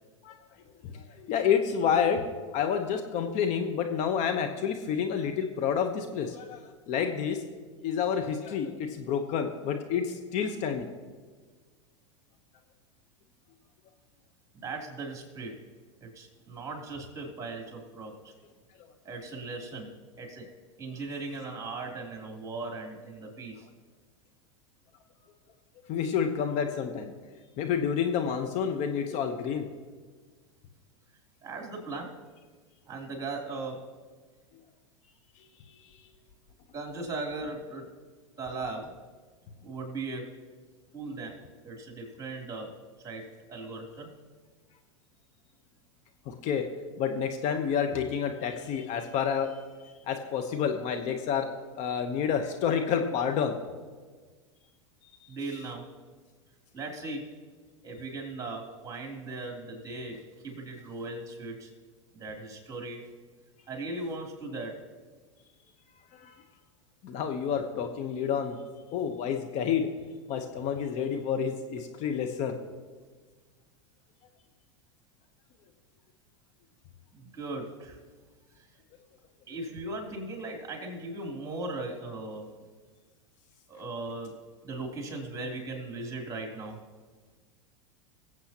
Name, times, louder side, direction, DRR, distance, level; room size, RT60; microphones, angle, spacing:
voice 1, 0.8-2.2 2.5-6.6 6.9-7.4 7.8-10.9 25.9-27.1 27.6-29.7 46.3-46.6 47.0-49.6 50.1-51.5 51.8-53.6 66.1-66.4 67.0-68.6 68.9-69.9 70.3-72.5, left 7 dB, 45° left, 5 dB, 1.0 m, -29 dB
voice 2, 14.5-15.6 16.0-18.3 19.0-20.5 20.8-23.7 31.4-32.1 32.9-33.9 36.7-37.9 38.4-39.0 39.6-40.4 40.9-44.1 55.3-55.8 56.7-57.3 57.8-61.7 62.1-63.0 63.7-64.8 77.1-78.0 78.6-78.7 79.5-82.5 83.7-84.4 84.6-86.8, right 3 dB, 20° right, 1 dB, 3.2 m, -38 dB
22.0 x 7.9 x 3.0 m, 1.5 s
hypercardioid pair, 95°, 16 cm